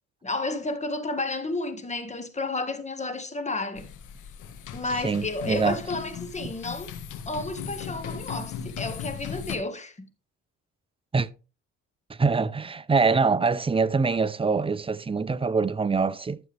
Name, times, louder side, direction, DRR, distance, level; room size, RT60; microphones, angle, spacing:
voice 1, 0.2-3.9 4.7-7.0 7.2-10.1, left 2 dB, 25° left, 1.7 m, -31 dB
sound 1, 3.7-9.6, left 7 dB, 80° left, 1.6 m, -37 dB
voice 2, 5.0-5.8 11.1-11.3 12.1-16.4, right 4 dB, 20° right, 0.6 m, -24 dB
12.5 x 7.1 x 3.4 m
cardioid pair, 90°, 30 cm